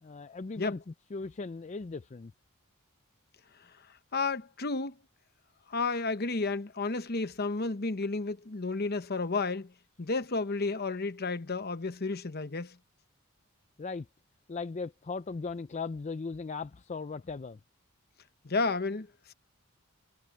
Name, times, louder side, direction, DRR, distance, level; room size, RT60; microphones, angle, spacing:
voice 1, 0.0-0.8 1.1-2.3 13.8-14.1 14.5-17.6, left 4 dB, 35° left, 0.4 m, -38 dB
voice 2, 4.1-4.9 5.7-9.7 10.0-12.8 18.4-19.3, left 3 dB, 50° left, 1.0 m, -32 dB
head